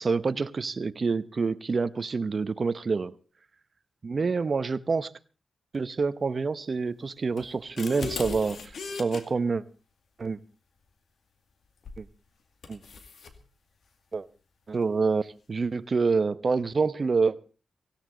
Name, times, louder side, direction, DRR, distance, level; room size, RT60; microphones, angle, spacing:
voice 1, 0.0-3.1 4.0-5.1 5.7-8.6 8.9-9.6 10.2-10.4 12.0-12.1 12.7-12.8 14.1-14.3 14.7-17.4, right 4 dB, 45° right, 0.9 m, -27 dB
sound 1, 7.4-9.2 11.8-12.1 12.6-13.4, left 4 dB, 70° left, 2.2 m, -38 dB
17.5 x 16.5 x 3.9 m
cardioid pair, 80°, 0 cm